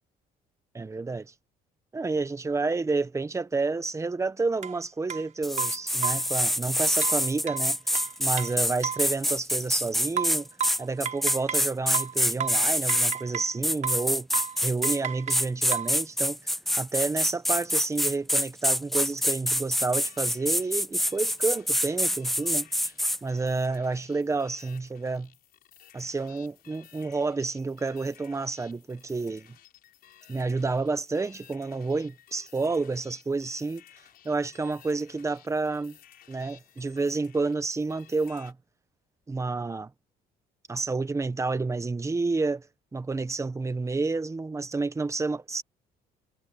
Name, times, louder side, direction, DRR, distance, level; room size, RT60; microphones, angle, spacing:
voice 1, 0.7-1.3 1.9-7.8 8.2-10.5 10.8-14.3 14.6-16.4 16.8-22.7 23.2-25.3 25.9-29.5 30.3-33.8 34.2-36.0 36.3-38.6 39.3-39.9 40.7-42.7 42.9-45.6, right 3 dB, 15° right, 1.2 m, -29 dB
sound 1, 4.6-4.8 5.1-5.2 5.6-6.3 7.0-9.1 10.2-11.7 11.9-13.6 13.8-14.1 14.3-14.6 14.8-16.0, right 8 dB, 45° right, 4.1 m, -33 dB
sound 2, 5.4-13.2 13.6-15.0 15.3-23.2, equal, ahead, 0.4 m, -26 dB
sound 3, 20.0-38.5, left 11 dB, 65° left, 5.3 m, -55 dB
cardioid pair, 110°, 17 cm